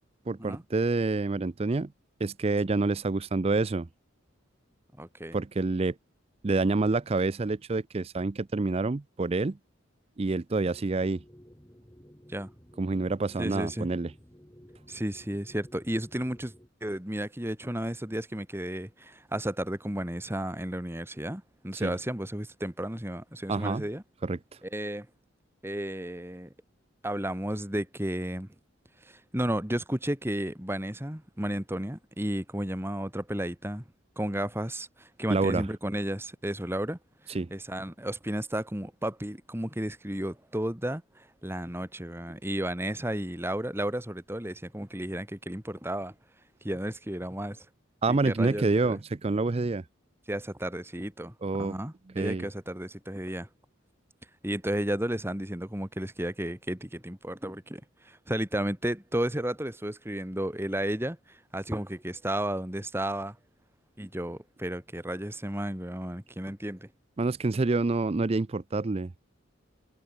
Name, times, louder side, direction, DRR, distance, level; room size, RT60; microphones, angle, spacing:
voice 1, 0.3-1.9 2.2-3.9 5.3-5.9 6.4-9.6 10.2-11.2 12.8-14.1 21.8-21.9 23.5-23.8 24.2-24.4 35.3-35.6 37.3-37.5 48.0-49.8 51.4-51.8 52.2-52.5 67.2-69.1, right 3 dB, 30° right, 0.4 m, -27 dB
voice 2, 5.0-5.4 12.3-12.5 13.4-13.9 14.9-16.5 16.8-24.0 24.6-25.1 25.6-26.5 27.0-28.5 29.0-33.8 34.2-37.0 37.2-46.1 46.6-47.7 48.1-49.0 50.3-53.5 54.4-63.4 64.0-66.9, right 1 dB, 10° right, 2.2 m, -33 dB
sound 1, 10.6-16.7, equal, 15° left, 3.4 m, -54 dB
head